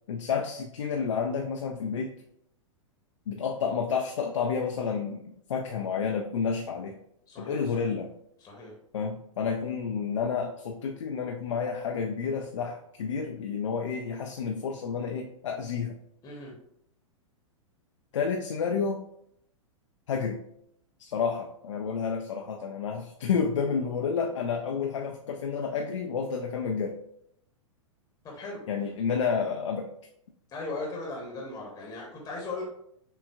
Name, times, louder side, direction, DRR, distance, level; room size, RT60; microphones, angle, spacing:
voice 1, 0.1-2.1 3.3-7.0 7.4-8.1 8.9-16.0 18.1-19.0 20.1-20.4 21.0-27.0 28.7-29.9, left 6 dB, 65° left, 3 dB, 0.4 m, -30 dB
voice 2, 7.3-7.9 8.4-8.7 16.2-16.5 28.2-28.6 30.5-32.6, left 3 dB, 20° left, -2 dB, 0.9 m, -38 dB
6.0 x 2.3 x 2.3 m, 0.73 s
figure-of-eight pair, 100°, 17 cm